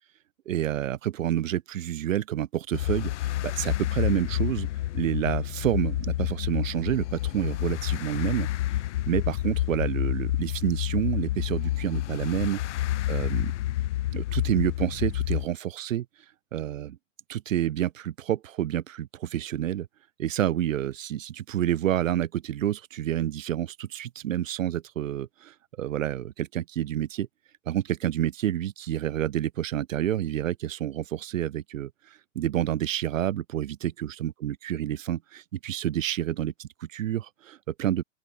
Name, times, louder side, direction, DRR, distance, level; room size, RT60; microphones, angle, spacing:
voice 1, 0.5-4.7 4.9-8.5 9.1-12.6 13.1-13.5 14.1-16.1 16.5-17.0 17.3-19.9 20.2-27.3 27.7-31.9 32.3-38.0, right 12 dB, 90° right, 1.1 m, -29 dB
sound 1, 2.7-15.5, left 14 dB, 65° left, 3.8 m, -29 dB
open air
hypercardioid pair, 145°, 38 cm